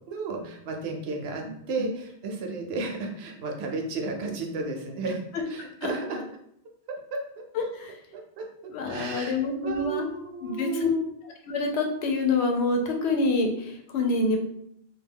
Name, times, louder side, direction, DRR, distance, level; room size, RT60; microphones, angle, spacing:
voice 1, 0.1-6.2 7.1-7.2 8.1-8.5 8.9-11.0, right 3 dB, 70° right, 2 dB, 0.8 m, -33 dB
voice 2, 7.5-7.9 8.7-10.1 10.4-10.9 11.4-14.4, left 3 dB, 80° left, 2 dB, 0.8 m, -26 dB
2.2 x 2.2 x 3.5 m, 0.72 s
omnidirectional pair, 1.1 m